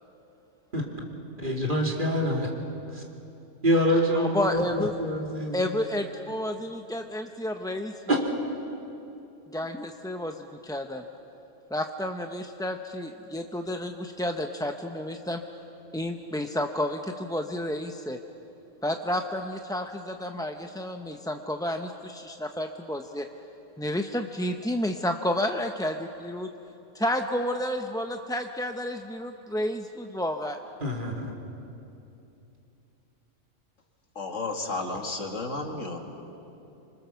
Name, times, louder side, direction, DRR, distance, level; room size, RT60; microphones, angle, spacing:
voice 1, 1.4-2.5 2.9-3.0 3.6-5.6 8.1-8.2 30.8-31.3, equal, 40° right, -1 dB, 3.0 m, -26 dB
voice 2, 4.2-4.9 5.5-7.9 9.5-10.4 10.6-11.0 11.7-15.4 15.9-18.2 18.8-23.3 23.8-26.5 26.9-30.6, left 1 dB, 5° left, 5 dB, 0.5 m, -31 dB
voice 3, 34.2-36.0, left 3 dB, 80° left, 3 dB, 2.4 m, -32 dB
26.5 x 25.0 x 6.9 m, 2.9 s
omnidirectional pair, 1.3 m